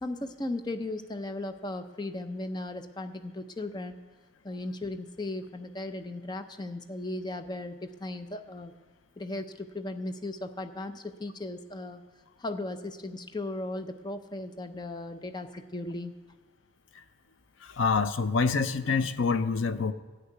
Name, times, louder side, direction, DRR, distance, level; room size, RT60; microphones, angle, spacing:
voice 1, 0.0-4.0 4.4-8.7 9.2-12.0 12.4-16.1, left 2 dB, 20° left, 8 dB, 0.5 m, -36 dB
voice 2, 17.6-19.9, left 4 dB, 75° left, 12 dB, 0.6 m, -26 dB
13.5 x 6.6 x 9.3 m, 1.3 s
head